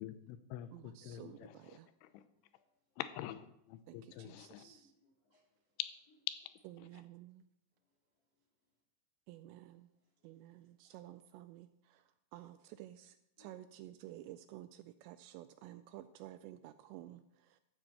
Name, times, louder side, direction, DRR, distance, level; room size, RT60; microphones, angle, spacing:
voice 1, 0.0-2.2 3.0-4.6 6.8-7.0, left 12 dB, 85° left, 11 dB, 3.1 m, -47 dB
voice 2, 0.7-1.9 3.9-4.8 6.8-7.4 9.3-9.9 10.2-17.6, right 14 dB, 85° right, 11 dB, 2.5 m, -53 dB
voice 3, 2.0-3.0 4.5-5.8 7.7-8.8 9.7-11.2 11.9-12.1 12.5-12.6 13.4-13.6, left 2 dB, 30° left, -2 dB, 1.8 m, -75 dB
13.0 x 5.0 x 7.7 m, 0.80 s
omnidirectional pair, 5.5 m